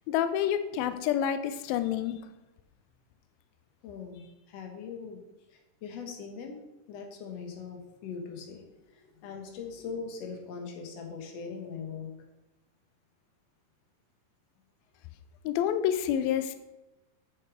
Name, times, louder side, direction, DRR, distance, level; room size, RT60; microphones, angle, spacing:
voice 1, 0.1-2.2 15.4-16.6, left 10 dB, 75° left, 10 dB, 2.3 m, -28 dB
voice 2, 3.8-5.2 5.5-6.6 6.9-8.6 8.9-12.1, left 5 dB, 60° left, 3 dB, 1.8 m, -41 dB
8.6 x 7.3 x 4.8 m, 1.0 s
omnidirectional pair, 4.7 m